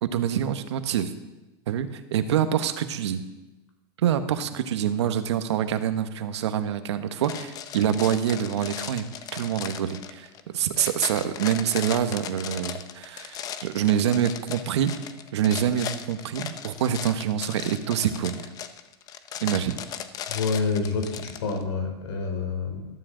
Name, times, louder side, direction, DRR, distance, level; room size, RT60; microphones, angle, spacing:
voice 1, 0.0-1.1 1.7-3.2 4.0-9.1 9.3-14.9 15.3-18.5 19.4-19.8, right 9 dB, 90° right, 10 dB, 1.1 m, -26 dB
sound 1, 7.2-21.6, left 9 dB, 25° left, 0.6 m, -37 dB
voice 2, 20.3-22.9, left 4 dB, 85° left, 3 dB, 3.2 m, -28 dB
14.0 x 12.5 x 3.8 m, 1.1 s
supercardioid pair, 155°, 14 cm